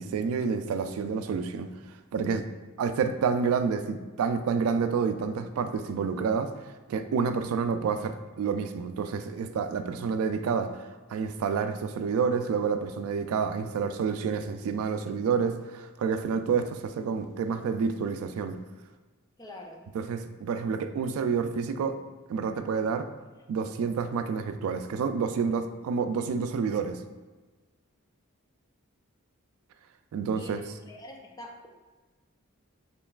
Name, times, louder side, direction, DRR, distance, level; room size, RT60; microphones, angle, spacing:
voice 1, 0.0-1.7 2.1-2.5 2.8-6.5 6.9-18.6 19.9-22.0 22.3-23.1 23.5-27.0 30.1-30.6, right 5 dB, 85° right, 13 dB, 0.3 m, -29 dB
voice 2, 19.4-19.9 30.3-30.6 30.9-31.7, left 1 dB, 20° left, 2 dB, 0.4 m, -44 dB
4.3 x 3.2 x 2.3 m, 1.3 s
head